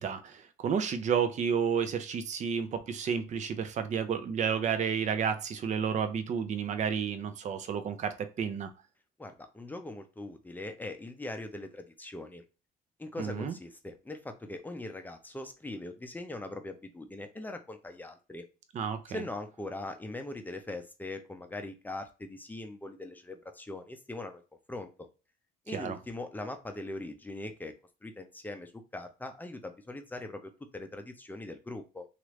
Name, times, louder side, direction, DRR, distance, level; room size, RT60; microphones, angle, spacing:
voice 1, 0.0-8.7 13.2-13.5 18.7-19.2 25.7-26.0, right 7 dB, 45° right, 0.6 m, -31 dB
voice 2, 9.2-12.4 13.0-18.4 19.1-24.4 24.7-24.9 25.7-27.7 28.0-32.1, left 2 dB, 10° left, 0.5 m, -41 dB
3.0 x 2.5 x 3.0 m
cardioid pair, 110°, 17 cm